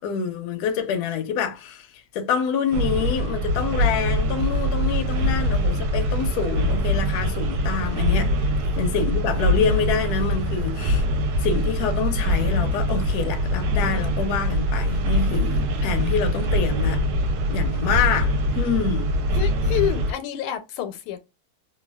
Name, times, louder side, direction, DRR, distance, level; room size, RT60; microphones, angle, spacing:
voice 1, 0.0-1.9 2.1-8.3 8.8-11.0 11.4-17.0 17.5-19.1, left 7 dB, 75° left, 0.9 m, -26 dB
sound 1, 2.7-20.1, equal, 75° right, 1.3 m, -23 dB
voice 2, 19.3-21.2, left 11 dB, 90° left, 1.5 m, -28 dB
3.3 x 2.2 x 2.2 m
omnidirectional pair, 2.3 m